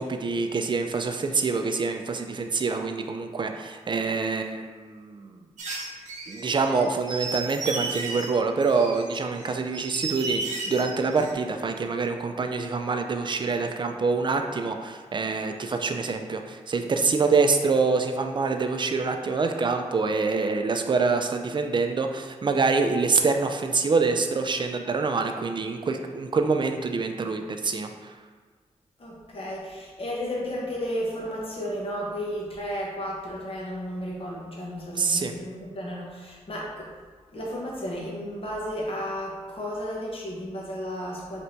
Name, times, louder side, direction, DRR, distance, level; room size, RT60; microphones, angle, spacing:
voice 1, 0.0-5.4 6.3-27.9 35.0-35.3, right 4 dB, 40° right, 5 dB, 0.4 m, -26 dB
sound 1, 5.6-8.3 8.6-11.3, right 3 dB, 85° right, 0.7 m, -33 dB
voice 2, 29.0-36.9 37.3-41.4, equal, 50° left, -4 dB, 1.0 m, -33 dB
3.4 x 2.7 x 4.4 m, 1.5 s
cardioid pair, 60°, 12 cm